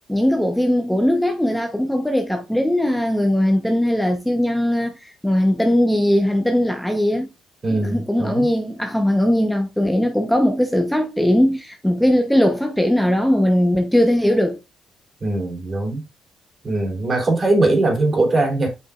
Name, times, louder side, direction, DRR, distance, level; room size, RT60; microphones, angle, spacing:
voice 1, 0.1-7.3 7.7-14.6, left 1 dB, 5° left, 0.9 m, -19 dB
voice 2, 7.6-8.5 15.2-16.0 16.6-18.7, right 2 dB, 35° right, 3.0 m, -20 dB
8.2 x 5.2 x 2.5 m
cardioid pair, 90°, 0 cm